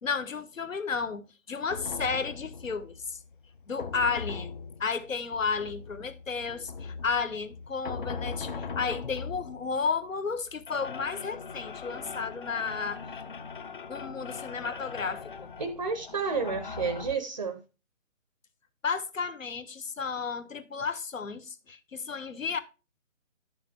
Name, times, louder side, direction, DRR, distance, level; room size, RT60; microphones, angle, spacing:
voice 1, 0.0-3.2 3.7-4.5 4.8-13.0 13.9-15.5 18.8-22.6, left 5 dB, 75° left, 1.3 m, -32 dB
sound 1, 1.7-17.1, left 5 dB, 40° left, 0.6 m, -40 dB
voice 2, 15.6-17.6, right 5 dB, 25° right, 0.6 m, -31 dB
11.0 x 6.9 x 3.2 m
figure-of-eight pair, 155°, 40 cm